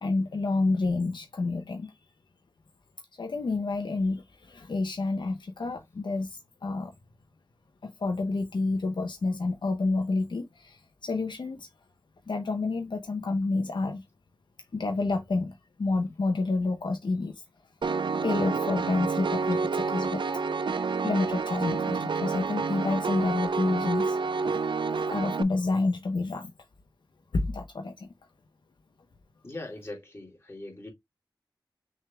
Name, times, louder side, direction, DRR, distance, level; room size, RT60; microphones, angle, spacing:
voice 1, 0.0-1.9 3.2-6.9 7.8-11.7 12.3-14.0 14.7-17.4 18.2-20.2 21.0-24.4 25.1-26.5 27.3-28.1, left 3 dB, 75° left, 0.8 m, -29 dB
Piano, 17.8-25.4, right 4 dB, 85° right, 0.4 m, -29 dB
voice 2, 29.4-30.9, left 2 dB, 30° left, 2.6 m, -41 dB
6.4 x 3.5 x 2.2 m
wide cardioid pair, 70°, 8 cm